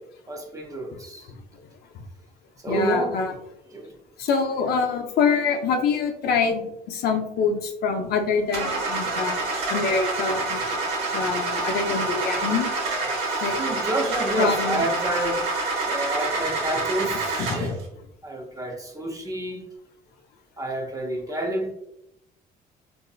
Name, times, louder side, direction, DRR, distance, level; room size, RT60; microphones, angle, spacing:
voice 1, 0.3-1.3 2.6-3.2 3.7-4.0 13.6-15.5 15.8-17.4 18.2-19.6 20.6-21.7, right 1 dB, 20° right, 2 dB, 0.6 m, -29 dB
voice 2, 2.7-3.3 4.2-10.8 11.1-12.7 13.4-13.6 14.4-14.9 17.4-17.7, left 5 dB, 70° left, 3 dB, 0.6 m, -25 dB
Car / Engine starting, 8.5-17.8, right 3 dB, 90° right, 1.0 m, -27 dB
3.8 x 2.7 x 2.3 m, 0.80 s
cardioid pair, 110°, 17 cm